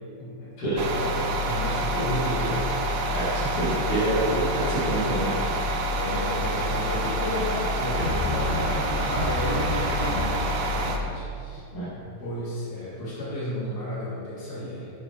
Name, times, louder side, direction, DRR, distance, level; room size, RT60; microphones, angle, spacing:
voice 1, 0.2-0.5 0.9-1.1 1.4-2.7 5.9-11.6 12.2-14.9, left 1 dB, 45° left, -8 dB, 3.3 m, -32 dB
sound 1, 0.8-11.0, right 1 dB, 60° right, 0.8 m, -27 dB
voice 2, 3.1-5.3 11.7-12.0, right 1 dB, 80° left, -9 dB, 3.4 m, -27 dB
sound 2, 8.0-10.6, left 1 dB, 20° right, 2.1 m, -31 dB
9.8 x 7.2 x 4.7 m, 2.4 s
omnidirectional pair, 2.4 m